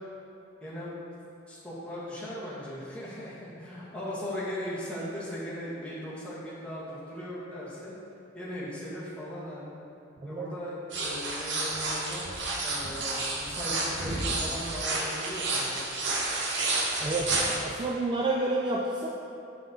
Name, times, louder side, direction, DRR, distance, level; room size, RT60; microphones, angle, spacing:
voice 1, 0.6-1.0 1.5-7.9 8.3-9.7 10.2-12.3 12.6-15.9, left 1 dB, 5° left, -10 dB, 1.6 m, -38 dB
sound 1, 10.9-17.6, right 2 dB, 70° right, 0.9 m, -30 dB
voice 2, 17.0-19.1, right 2 dB, 25° right, -2 dB, 0.3 m, -29 dB
6.9 x 5.8 x 3.7 m, 2.8 s
head